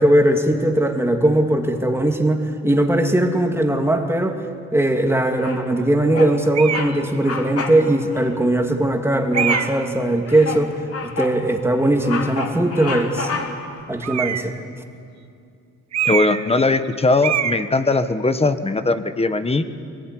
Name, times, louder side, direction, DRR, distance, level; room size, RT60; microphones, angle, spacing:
voice 1, 0.0-4.4 4.7-10.7 11.0-13.3 13.9-14.5, right 1 dB, 10° right, 3 dB, 2.6 m, -19 dB
Bird vocalization bird call bird song, 5.4-5.8 6.1-6.4 6.7-6.9 7.2-7.8 8.1-8.3 9.3-9.8 10.3-11.4 11.8-13.7, left 4 dB, 50° left, 3.0 m, -29 dB
sound 1, 6.5-6.9 7.8-7.9 9.3-9.9 14.0-14.6 15.9-16.5 16.8-16.9 17.2-17.6, right 10 dB, 60° right, 1.2 m, -23 dB
voice 2, 16.0-19.6, left 3 dB, 20° left, 11 dB, 1.3 m, -19 dB
22.5 x 20.0 x 10.0 m, 2.5 s
cardioid pair, 90°, 30 cm